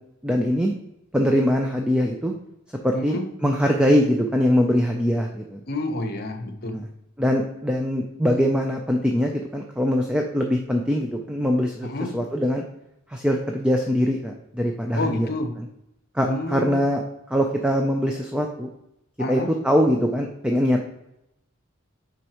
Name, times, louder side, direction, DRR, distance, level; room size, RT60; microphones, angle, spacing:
voice 1, 0.2-0.8 1.1-2.3 2.8-5.6 6.7-6.9 7.2-12.6 13.1-15.3 15.6-15.7 16.1-17.0 17.3-18.7 19.3-20.8, equal, 5° right, 2 dB, 0.4 m, -22 dB
voice 2, 5.7-6.8 11.8-12.1 14.9-15.5 16.3-16.8 19.2-19.5, left 2 dB, 45° left, 6 dB, 0.9 m, -28 dB
8.1 x 5.3 x 3.0 m, 0.84 s
head